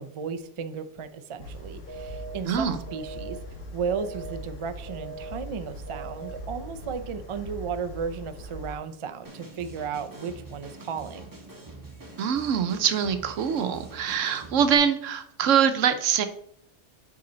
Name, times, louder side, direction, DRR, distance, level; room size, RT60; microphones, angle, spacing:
voice 1, 0.0-11.3, right 6 dB, 45° right, 8 dB, 0.4 m, -34 dB
sound 1, 1.4-8.8, equal, 85° left, 1.6 m, -41 dB
sound 2, 1.9-2.4 2.9-3.4 3.9-4.4 4.9-5.4 5.9-6.4, right 4 dB, 40° left, 1.6 m, -40 dB
voice 2, 2.5-2.8 12.2-16.3, right 8 dB, 85° right, 9 dB, 1.1 m, -24 dB
sound 3, 9.2-14.8, right 2 dB, 15° right, 1.2 m, -45 dB
8.6 x 4.9 x 3.9 m, 0.68 s
omnidirectional pair, 1.3 m